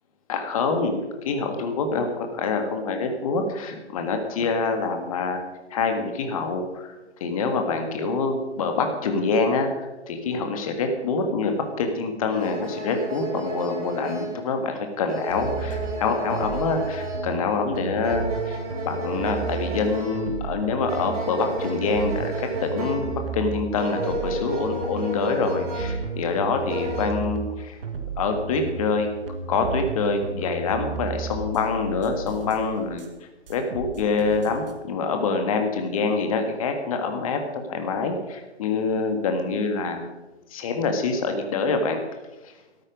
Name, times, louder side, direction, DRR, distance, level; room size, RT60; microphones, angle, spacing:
voice 1, 0.3-5.4 5.7-6.9 7.2-11.5 11.8-18.6 18.8-22.3 22.6-27.7 28.2-29.1 29.5-33.1 33.5-37.4 37.7-40.1 40.5-42.0, left 4 dB, 30° left, 5 dB, 1.7 m, -26 dB
sound 1, 12.3-27.1, right 2 dB, 30° right, 4.8 m, -33 dB
sound 2, 15.3-15.9 16.3-19.8 20.1-23.6 24.0-27.5 27.8-33.1 33.5-34.8, right 4 dB, 50° right, 1.7 m, -34 dB
13.5 x 12.5 x 5.1 m, 1.1 s
figure-of-eight pair, 135°, 36 cm